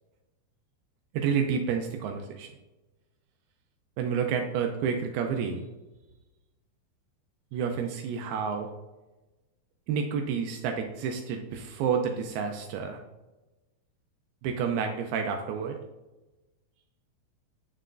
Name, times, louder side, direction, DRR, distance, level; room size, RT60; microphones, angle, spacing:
voice 1, 1.1-2.5 4.0-5.7 7.5-8.7 9.9-13.0 14.4-15.8, right 6 dB, 85° right, 3 dB, 2.5 m, -29 dB
6.6 x 6.0 x 2.5 m, 1.1 s
omnidirectional pair, 4.4 m